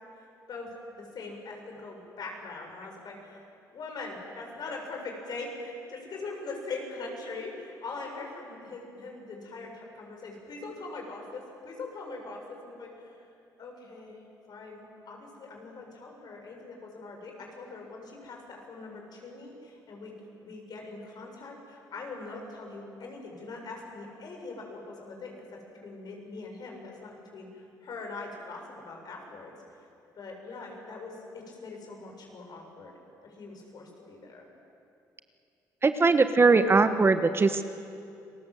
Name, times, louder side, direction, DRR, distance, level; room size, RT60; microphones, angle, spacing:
voice 1, 0.1-0.7 0.9-3.5 3.7-13.2 13.6-20.1 20.4-25.5 25.8-29.5 30.1-32.9 33.2-34.5, left 3 dB, 60° left, 1 dB, 6.9 m, -42 dB
voice 2, 35.8-37.6, right 4 dB, 30° right, 9 dB, 1.3 m, -21 dB
29.5 x 20.0 x 7.9 m, 2.6 s
supercardioid pair, 75°, 8 cm